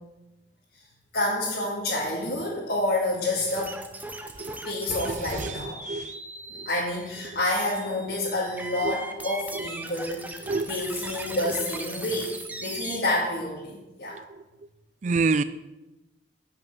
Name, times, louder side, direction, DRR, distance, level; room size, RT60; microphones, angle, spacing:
voice 1, 1.1-3.7 4.6-5.8 6.5-14.2, left 1 dB, 55° left, 2.1 m, -28 dB
sound 1, 3.5-13.0, right 2 dB, 10° right, 0.7 m, -39 dB
voice 2, 5.0-5.5 5.9-6.2 8.8-8.9 10.5-10.7 15.0-15.4, right 4 dB, 40° right, 0.4 m, -26 dB
11.0 x 5.8 x 7.6 m
head